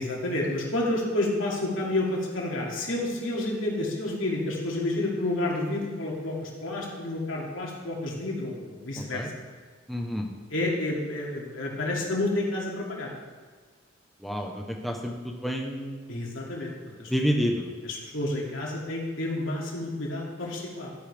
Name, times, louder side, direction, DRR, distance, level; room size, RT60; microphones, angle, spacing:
voice 1, 0.0-9.3 10.5-13.1 16.1-16.7 17.0-17.1 17.8-20.9, left 1 dB, 80° left, -3 dB, 2.5 m, -30 dB
voice 2, 9.0-9.3 9.9-10.3 14.2-15.1 15.4-16.2 17.1-17.7, equal, ahead, 0 dB, 0.9 m, -29 dB
12.0 x 10.0 x 3.4 m, 1.5 s
head